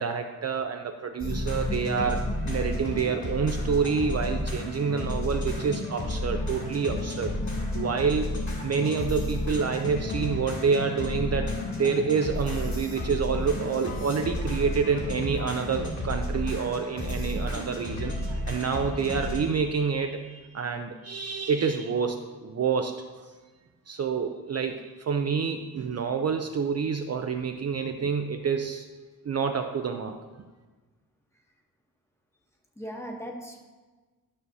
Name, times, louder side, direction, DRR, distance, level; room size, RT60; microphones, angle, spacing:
voice 1, 0.0-7.3 7.7-8.4 8.6-11.5 11.8-23.3 23.9-28.8 29.2-30.2, right 6 dB, 45° right, 5 dB, 0.5 m, -28 dB
sound 1, 1.2-19.4, left 1 dB, 50° left, 2.2 m, -32 dB
sound 2, 1.2-15.6, left 5 dB, 25° left, 0.4 m, -39 dB
voice 2, 9.6-9.9 32.8-33.7, equal, 5° left, 1 dB, 1.0 m, -40 dB
12.0 x 6.2 x 2.7 m, 1.3 s
wide cardioid pair, 130°, 36 cm